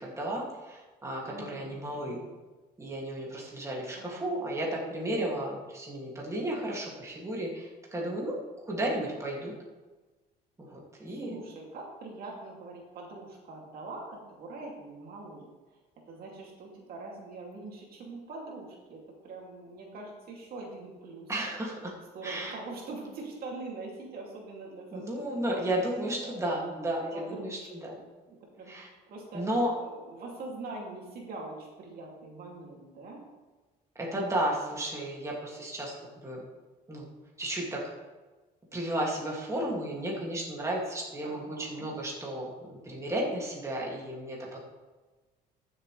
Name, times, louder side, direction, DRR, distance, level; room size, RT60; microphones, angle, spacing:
voice 1, 0.0-2.2 2.8-8.3 8.7-9.5 10.6-11.4 21.3-21.9 22.2-22.5 24.9-28.0 28.7-28.9 29.3-29.7 34.0-36.4 36.9-37.1 37.4-37.8 38.7-44.6, right 1 dB, 15° right, -3 dB, 2.4 m, -33 dB
voice 2, 1.2-2.2 4.0-4.3 11.2-15.8 16.1-21.3 22.1-25.8 26.2-26.3 27.1-28.7 29.1-29.4 29.8-33.2 41.2-41.9, right 3 dB, 65° right, -1 dB, 2.7 m, -43 dB
14.5 x 7.4 x 3.3 m, 1.2 s
cardioid pair, 110°, 17 cm